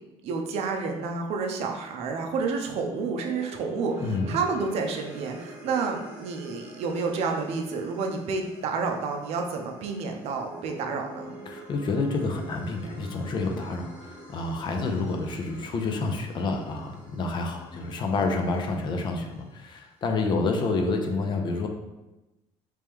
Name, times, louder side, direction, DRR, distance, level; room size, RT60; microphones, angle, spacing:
voice 1, 0.2-11.4, right 4 dB, 65° right, 3 dB, 0.6 m, -30 dB
sound 1, 2.8-19.2, right 2 dB, 10° right, 0.9 m, -46 dB
voice 2, 4.0-4.4 11.5-21.7, left 3 dB, 40° left, 3 dB, 0.5 m, -28 dB
3.3 x 3.1 x 3.5 m, 1.0 s
cardioid pair, 135°, 12 cm